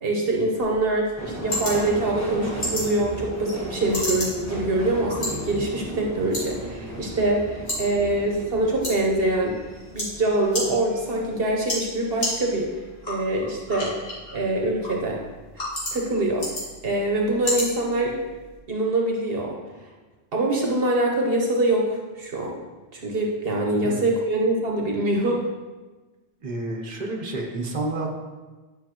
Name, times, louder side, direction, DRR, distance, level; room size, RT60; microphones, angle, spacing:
voice 1, 0.0-9.6 9.9-12.7 13.1-14.0 14.3-15.2 15.9-16.5 16.8-18.2 18.7-19.6 20.3-22.6 22.9-25.4, right 2 dB, 65° right, 0 dB, 1.2 m, -24 dB
sound 1, 0.6-18.6, left 1 dB, 70° left, 2.5 m, -35 dB
Subway metro underground, 1.2-11.9 12.3-13.0 13.2-13.4, equal, 15° left, 1.2 m, -36 dB
voice 2, 26.4-28.1, right 2 dB, 45° right, 1 dB, 1.1 m, -30 dB
10.0 x 5.6 x 3.0 m, 1.3 s
omnidirectional pair, 1.0 m